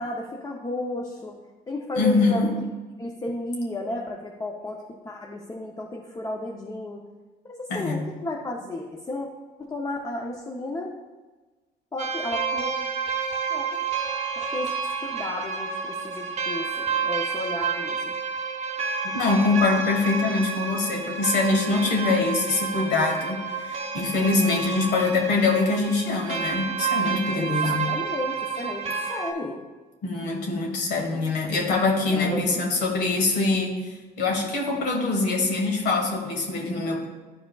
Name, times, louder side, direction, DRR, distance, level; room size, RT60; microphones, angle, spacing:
voice 1, 0.0-1.4 1.7-2.5 3.0-7.0 7.5-9.3 9.6-10.9 11.9-12.7 13.5-13.8 14.4-14.7 15.0-18.1 27.3-29.6 32.1-32.6, left 1 dB, 20° left, 0 dB, 0.7 m, -33 dB
voice 2, 2.0-2.5 7.7-8.0 19.1-27.9 30.0-33.8 34.2-37.1, left 3 dB, 85° left, 1 dB, 1.5 m, -24 dB
sound 1, 12.0-29.3, right 5 dB, 40° right, 0.9 m, -30 dB
11.0 x 4.7 x 2.3 m, 1.3 s
cardioid pair, 110°, 17 cm